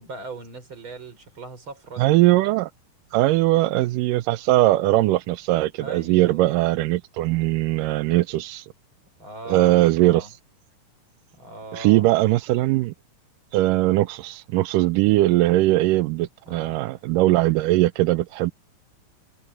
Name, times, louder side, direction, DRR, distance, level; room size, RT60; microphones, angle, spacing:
voice 1, 0.0-2.1 5.8-6.6 9.2-9.7 10.0-10.3 11.4-12.0 16.5-16.8, right 2 dB, 35° right, 5.8 m, -39 dB
voice 2, 2.0-2.7 3.1-8.7 9.5-10.3 11.7-12.9 13.5-18.5, right 17 dB, 90° right, 2.3 m, -20 dB
omnidirectional pair, 3.8 m